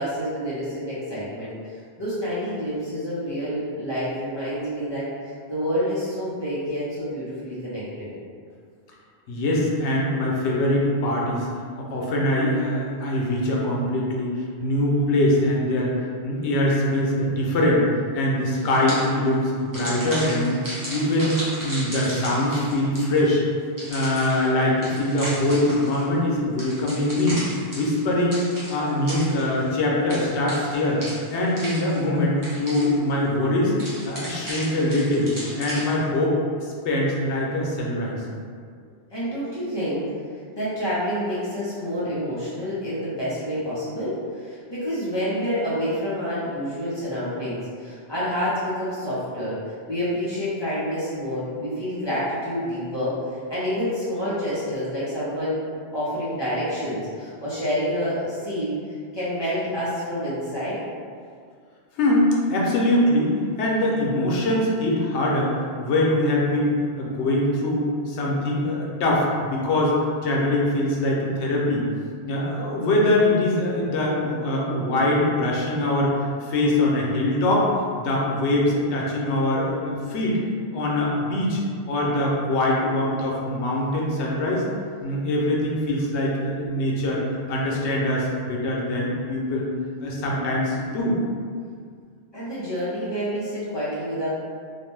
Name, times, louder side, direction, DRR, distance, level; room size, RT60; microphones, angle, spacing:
voice 1, 0.0-8.1 39.1-40.1 40.6-49.6 49.9-55.6 55.9-58.7 59.1-60.8 92.3-94.3, equal, 30° left, -11 dB, 0.6 m, -28 dB
voice 2, 9.3-11.5 11.8-16.0 16.2-17.8 18.1-20.6 20.9-23.4 23.9-27.4 27.8-31.0 31.3-33.7 34.0-35.3 35.6-36.3 36.6-38.2 62.0-65.5 65.8-70.0 70.2-71.9 72.2-76.1 76.4-77.7 78.0-80.4 80.7-81.6 81.9-84.6 85.0-87.2 87.5-89.7 90.0-91.2, left 1 dB, 85° left, -3 dB, 0.9 m, -23 dB
sound 1, 18.5-19.3 19.7-23.3 23.8-26.1 26.6-29.7 30.1-32.2 32.4-33.1 33.8-36.0, right 1 dB, 20° right, 0.6 m, -35 dB
2.5 x 2.1 x 3.1 m, 2.1 s
omnidirectional pair, 1.1 m